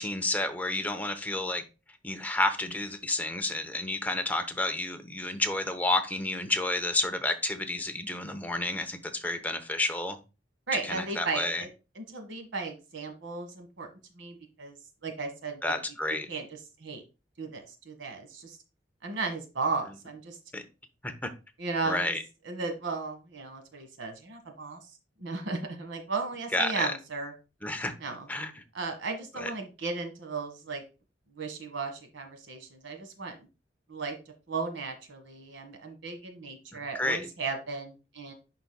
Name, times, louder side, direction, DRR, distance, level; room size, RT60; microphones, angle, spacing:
voice 1, 0.0-1.6 2.0-10.2 10.9-11.6 15.6-16.3 20.5-20.6 21.0-21.3 21.8-22.2 26.5-26.9 27.6-27.9 28.3-28.5 29.4-29.5 36.7-37.3, left 2 dB, 10° left, 0.8 m, -30 dB
voice 2, 10.7-13.9 14.1-14.8 15.0-15.8 16.3-16.5 16.8-17.0 17.4-18.6 19.0-20.4 21.6-22.1 22.4-24.9 25.2-27.3 28.0-28.3 28.7-30.8 31.3-33.4 33.9-34.2 34.5-38.3, right 4 dB, 85° right, 1.5 m, -35 dB
10.5 x 4.1 x 2.2 m
head